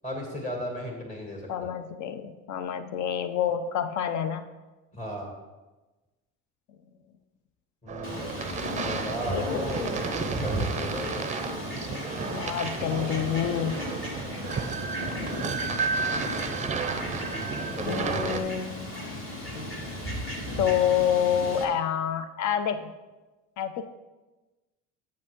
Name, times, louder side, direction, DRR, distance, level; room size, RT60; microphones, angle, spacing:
voice 1, 0.0-1.7 4.9-5.3 7.8-11.2 14.2-14.5 17.7-18.4, left 1 dB, 20° left, 0 dB, 2.5 m, -36 dB
voice 2, 1.5-4.5 9.3-9.4 12.3-13.8 17.9-18.7 20.6-22.9 23.6-23.9, left 9 dB, 60° left, 10 dB, 0.7 m, -27 dB
sound 1, 7.9-18.4, right 5 dB, 20° right, 0.6 m, -32 dB
Fowl, 8.0-21.6, left 1 dB, 40° left, 2.3 m, -35 dB
8.1 x 8.0 x 3.6 m, 1.1 s
supercardioid pair, 100°, 33 cm